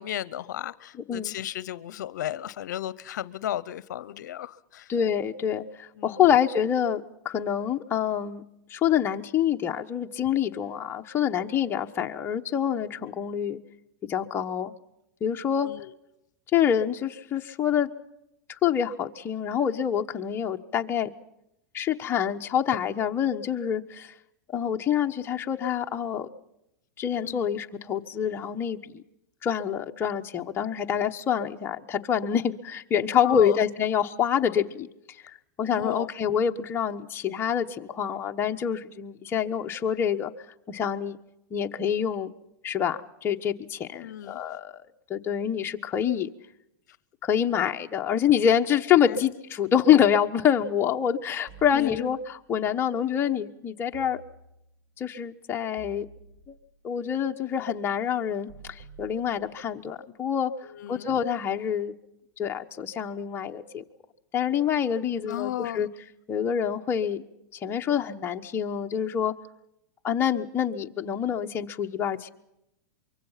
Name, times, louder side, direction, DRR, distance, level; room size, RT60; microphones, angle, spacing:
voice 1, 0.0-4.9 6.0-6.2 15.6-15.9 27.2-27.4 33.2-33.6 35.7-36.1 44.0-44.4 49.0-49.2 51.7-52.1 60.6-61.1 65.3-65.8, left 12 dB, 75° left, 0.7 m, -34 dB
voice 2, 4.9-8.4 8.7-13.6 14.1-14.7 15.2-15.7 16.5-17.9 18.5-21.1 21.7-24.1 24.5-26.3 27.0-29.0 29.4-34.9 35.2-40.3 40.7-41.2 41.5-42.3 42.6-44.8 45.1-46.3 47.2-54.2 55.0-56.1 56.5-56.6 56.8-60.5 60.9-61.9 62.4-63.8 64.3-65.9 66.3-67.2 67.5-69.3 70.0-72.3, left 9 dB, 25° left, 1.1 m, -26 dB
sound 1, 51.5-52.5 53.9-54.9 55.8-56.8 58.5-59.9, right 4 dB, 45° right, 5.4 m, -51 dB
24.5 x 23.5 x 5.8 m
supercardioid pair, 140°, 10 cm